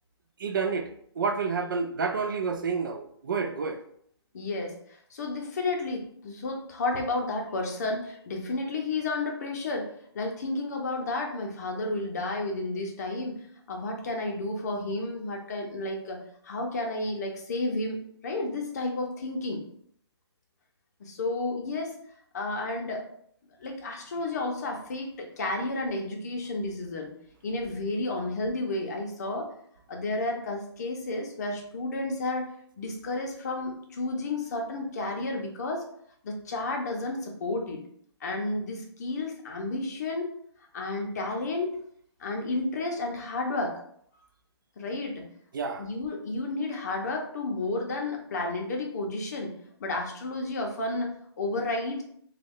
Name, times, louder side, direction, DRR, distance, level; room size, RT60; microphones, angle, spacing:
voice 1, 0.4-0.9 1.2-3.8 45.5-45.9, right 5 dB, 50° right, 0.4 m, -29 dB
voice 2, 4.3-4.7 5.1-19.6 21.0-21.9 22.3-23.0 23.6-27.1 27.4-29.5 29.9-32.5 32.8-35.9 36.2-37.8 38.2-40.3 40.7-41.8 42.2-43.8 44.8-45.3 45.8-49.5 49.8-52.0, left 2 dB, 40° left, 0.7 m, -32 dB
3.1 x 2.3 x 3.5 m
hypercardioid pair, 165°, 14 cm